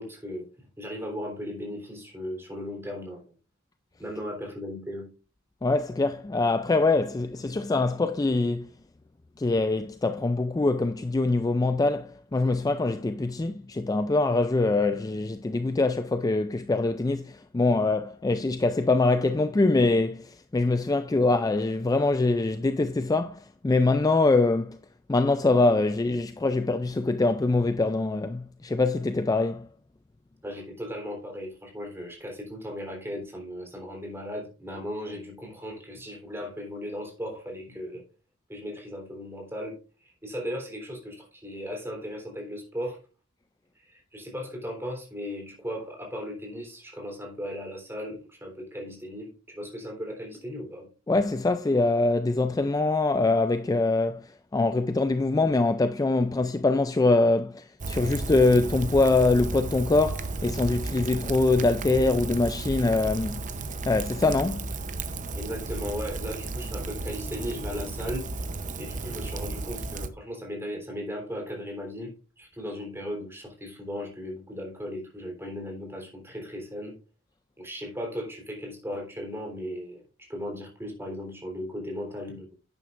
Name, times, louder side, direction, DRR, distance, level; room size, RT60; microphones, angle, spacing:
voice 1, 0.0-3.3 4.0-5.1 30.4-38.0 38.5-43.0 43.8-50.9 65.3-68.3 68.8-76.9 77.6-80.0 80.3-82.5, equal, 10° right, 3.6 m, -37 dB
voice 2, 5.6-8.7 9.4-24.8 25.1-29.7 51.1-63.4 63.9-64.7, left 3 dB, 15° left, 0.3 m, -24 dB
Rain, 57.8-70.1, right 3 dB, 40° right, 0.8 m, -34 dB
11.0 x 9.3 x 2.5 m
head